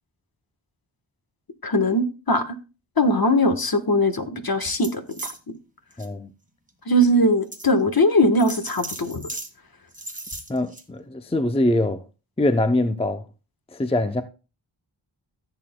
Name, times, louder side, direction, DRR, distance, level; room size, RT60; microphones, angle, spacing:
voice 1, 1.6-2.6 3.0-5.3 6.9-9.2, left 1 dB, 45° left, 1.3 m, -20 dB
sound 1, 4.7-5.4 5.9-6.1 6.7-6.8 7.5-7.7 8.4-9.5 9.9-10.8, right 2 dB, 15° right, 1.5 m, -36 dB
voice 2, 6.0-6.3 10.5-12.0 12.4-13.2 13.7-14.2, left 1 dB, 10° left, 0.6 m, -23 dB
15.0 x 7.7 x 2.2 m
wide cardioid pair, 55°, 48 cm